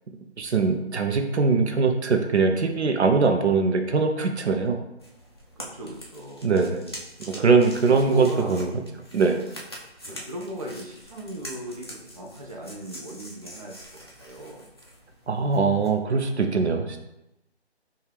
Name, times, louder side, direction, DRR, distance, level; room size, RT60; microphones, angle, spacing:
voice 1, 0.4-4.8 6.4-6.9 7.2-8.7 9.1-9.4 10.1-10.2 15.3-17.0, right 4 dB, 80° right, 5 dB, 0.7 m, -22 dB
sound 1, 5.0-16.0, equal, 25° left, 0.4 m, -44 dB
voice 2, 5.6-6.5 7.2-7.5 7.8-8.7 10.0-14.7, right 1 dB, 35° right, -1 dB, 0.4 m, -37 dB
5.2 x 2.4 x 3.2 m, 0.89 s
figure-of-eight pair, 155°, 33 cm